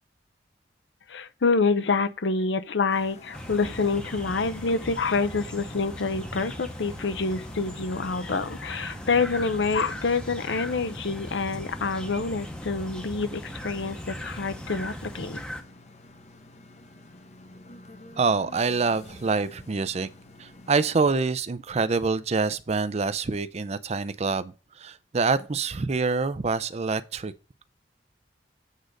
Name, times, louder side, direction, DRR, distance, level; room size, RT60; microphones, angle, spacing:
voice 1, 1.1-15.4, left 4 dB, 80° left, 0.7 m, -27 dB
sound 1, 2.9-21.2, left 2 dB, 40° left, 0.8 m, -49 dB
sound 2, 3.3-15.6, equal, 5° left, 0.8 m, -39 dB
voice 2, 18.2-20.1 20.4-27.3, right 4 dB, 35° right, 0.5 m, -26 dB
8.2 x 3.8 x 6.4 m
head